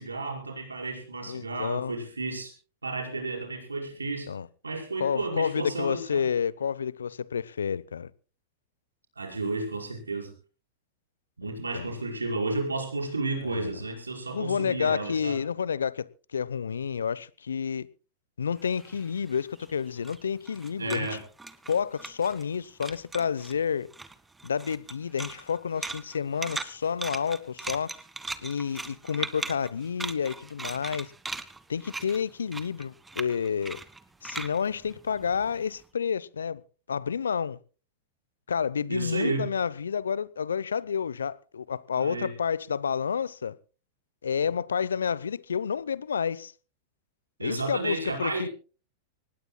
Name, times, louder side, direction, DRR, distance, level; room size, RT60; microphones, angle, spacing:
voice 1, 0.0-2.5 2.8-4.3 4.6-6.3 9.2-10.3 11.4-15.4 20.8-21.2 38.9-39.5 42.0-42.3 47.4-48.5, right 3 dB, 85° right, 5.4 m, -32 dB
voice 2, 1.3-1.9 4.3-4.5 5.0-8.1 11.7-11.9 12.8-12.9 13.4-13.8 14.3-17.9 18.4-21.2 21.7-23.9 24.4-27.9 28.4-31.1 31.7-33.8 34.2-36.6 36.9-37.6 38.5-43.6 44.2-46.5 47.4-48.5, left 7 dB, 80° left, 0.7 m, -30 dB
sound 1, 18.6-22.6 22.8-23.6 23.9-35.7, right 3 dB, 10° right, 1.5 m, -39 dB
24.5 x 19.5 x 2.2 m
figure-of-eight pair, 95°, 0 cm